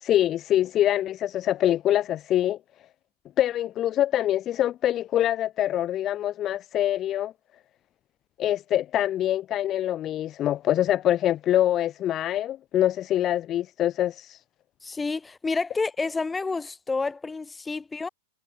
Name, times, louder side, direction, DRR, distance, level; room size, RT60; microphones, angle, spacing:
voice 1, 0.0-2.6 3.4-7.3 8.4-14.4, left 12 dB, 30° left, 1.9 m, -24 dB
voice 2, 14.8-18.1, left 4 dB, 10° left, 4.8 m, -29 dB
figure-of-eight pair, 90°, 0 cm